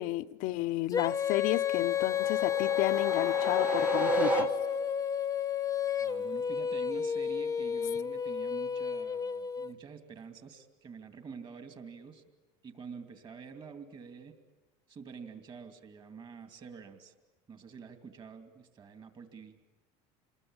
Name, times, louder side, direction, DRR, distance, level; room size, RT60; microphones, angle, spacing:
voice 1, 0.0-4.5, left 17 dB, 65° left, 0.9 m, -32 dB
Female singing, 0.9-9.7, left 9 dB, 20° left, 1.0 m, -31 dB
sound 1, 1.7-5.0, right 5 dB, 10° right, 1.0 m, -34 dB
voice 2, 6.0-12.2 12.6-14.3 14.9-17.1 17.5-19.6, right 5 dB, 30° right, 2.7 m, -47 dB
27.5 x 21.0 x 8.9 m
supercardioid pair, 125°, 15 cm